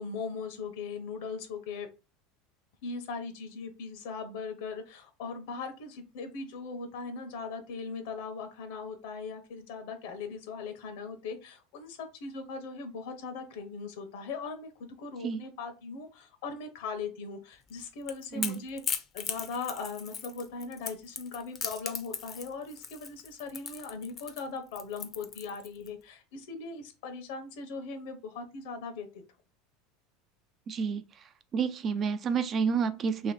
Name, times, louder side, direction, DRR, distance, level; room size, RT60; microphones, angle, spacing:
voice 1, 0.0-1.9 2.8-18.8 19.1-29.2, left 4 dB, 75° left, 1.0 m, -39 dB
Crackle / Crack, 17.7-25.9, left 7 dB, 30° left, 0.5 m, -38 dB
voice 2, 30.7-31.0 31.5-33.3, right 6 dB, 35° right, 0.4 m, -29 dB
3.0 x 2.9 x 4.2 m
supercardioid pair, 130°, 0 cm